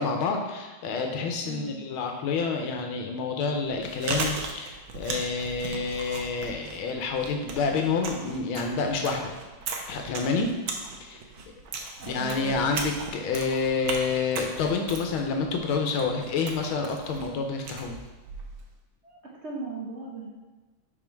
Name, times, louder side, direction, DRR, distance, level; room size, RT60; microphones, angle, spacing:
voice 1, 0.0-9.3 9.9-10.5 11.0-11.2 12.1-18.0, left 4 dB, 90° left, 3 dB, 1.6 m, -28 dB
voice 2, 1.4-1.8 12.0-12.7 19.0-20.3, right 4 dB, 55° right, -3 dB, 0.7 m, -38 dB
Chewing mastication, 3.6-18.7, right 4 dB, 75° right, 1.6 m, -37 dB
6.0 x 4.3 x 4.5 m, 1.2 s
omnidirectional pair, 2.2 m